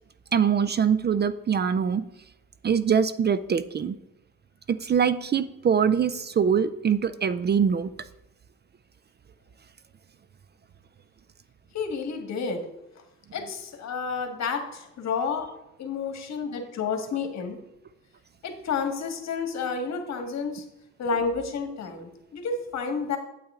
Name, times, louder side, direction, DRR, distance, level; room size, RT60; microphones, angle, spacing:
voice 1, 0.3-2.0 2.6-4.0 4.7-7.9, right 7 dB, 35° right, 14 dB, 0.5 m, -23 dB
voice 2, 11.7-12.7 13.3-15.5 15.8-17.6 18.4-20.6 21.0-23.2, left 5 dB, 60° left, 5 dB, 1.8 m, -30 dB
8.8 x 8.7 x 3.7 m, 0.90 s
cardioid pair, 90°, 30 cm